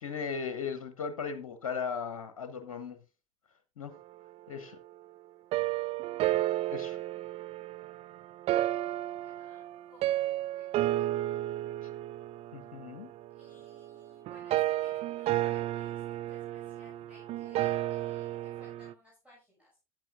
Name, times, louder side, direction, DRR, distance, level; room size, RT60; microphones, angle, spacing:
voice 1, 0.0-3.0 3.8-3.9 4.5-4.8 6.7-7.0 12.5-13.1, left 6 dB, 65° left, 1.0 m, -37 dB
sound 1, 5.5-18.9, right 15 dB, 35° right, 0.4 m, -32 dB
voice 2, 9.2-10.7 10.9-11.1 13.3-19.8, left 2 dB, 5° right, 6.3 m, -60 dB
13.5 x 9.0 x 2.4 m
figure-of-eight pair, 70°, 17 cm